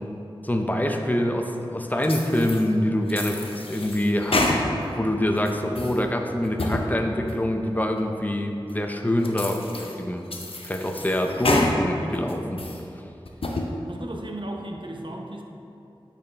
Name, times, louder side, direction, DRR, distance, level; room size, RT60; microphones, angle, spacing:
voice 1, 0.4-10.3 10.6-12.6, left 1 dB, 20° left, 3 dB, 0.6 m, -25 dB
sound 1, 2.0-2.6 3.1-5.0 5.4-6.0 6.4-6.9 7.3-7.4 8.0-8.1 8.7-8.8 9.2-9.9 10.3-11.7 12.1-12.8 13.3-13.7, left 2 dB, 75° left, 0.6 m, -28 dB
voice 2, 13.9-15.4, right 1 dB, 60° right, 1 dB, 0.7 m, -35 dB
8.9 x 4.2 x 3.3 m, 2.8 s
wide cardioid pair, 55°, 10 cm